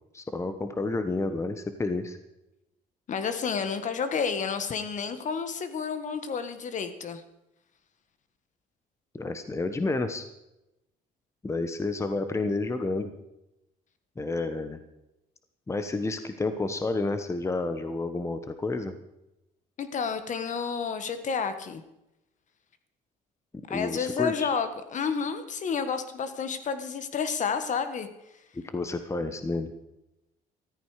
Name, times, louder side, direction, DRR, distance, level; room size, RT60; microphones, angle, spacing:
voice 1, 0.1-2.2 9.1-10.3 11.4-13.1 14.2-14.8 15.7-18.9 23.7-24.5 28.5-29.7, left 3 dB, 15° left, 9 dB, 1.1 m, -30 dB
voice 2, 3.1-7.2 19.8-21.8 23.7-28.1, left 6 dB, 45° left, 10 dB, 1.5 m, -30 dB
14.0 x 14.0 x 4.9 m, 0.90 s
cardioid pair, 110°, 17 cm